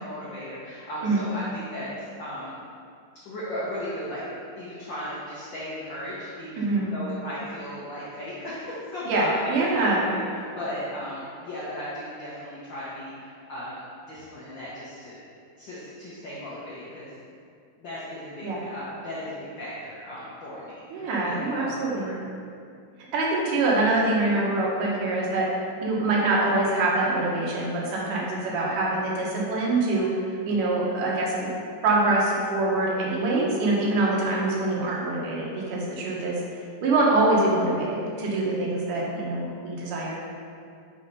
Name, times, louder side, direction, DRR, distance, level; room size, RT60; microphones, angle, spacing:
voice 1, 0.0-1.9 2.2-2.5 3.2-4.2 4.5-13.8 14.1-15.2 15.6-17.1 17.8-22.4, equal, 70° left, -8 dB, 1.0 m, -36 dB
voice 2, 6.6-6.9 9.1-10.1 18.4-18.6 20.9-22.1 23.1-25.5 25.8-31.5 31.8-36.4 36.8-40.1, right 2 dB, 80° right, -4 dB, 2.6 m, -24 dB
5.9 x 4.3 x 5.3 m, 2.4 s
omnidirectional pair, 3.6 m